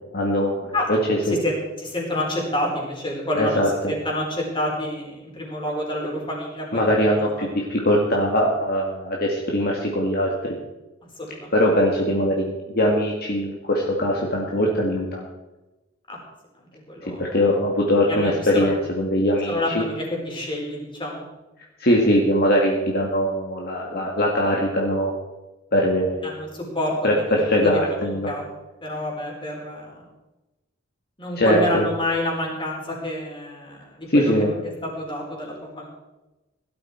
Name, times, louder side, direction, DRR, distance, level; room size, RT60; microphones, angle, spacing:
voice 1, 0.1-1.4 3.3-3.7 6.7-10.6 11.5-15.3 17.1-19.8 21.8-25.1 25.7-26.3 27.0-28.3 31.4-31.8 34.1-34.5, equal, 50° left, -1 dB, 2.1 m, -21 dB
voice 2, 0.7-7.0 7.4-7.5 11.2-11.5 16.1-16.2 16.6-17.2 18.1-18.7 19.5-21.2 26.2-28.5 28.8-29.9 31.2-35.9, left 1 dB, 25° left, -2 dB, 4.6 m, -28 dB
17.5 x 12.5 x 4.6 m, 1.0 s
head